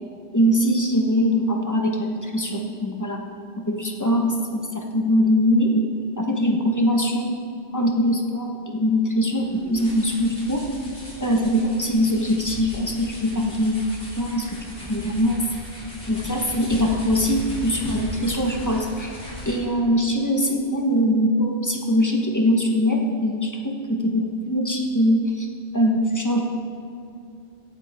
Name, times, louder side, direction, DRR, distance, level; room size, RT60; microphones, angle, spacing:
voice 1, 0.3-3.2 3.6-5.9 6.2-7.3 7.7-10.7 11.2-13.9 14.2-15.4 16.1-19.1 19.4-25.5 25.7-26.5, equal, 15° left, 1 dB, 1.3 m, -22 dB
sound 1, 9.3-19.8, left 1 dB, 55° left, 4.0 m, -37 dB
17.5 x 12.0 x 3.7 m, 2.6 s
omnidirectional pair, 1.1 m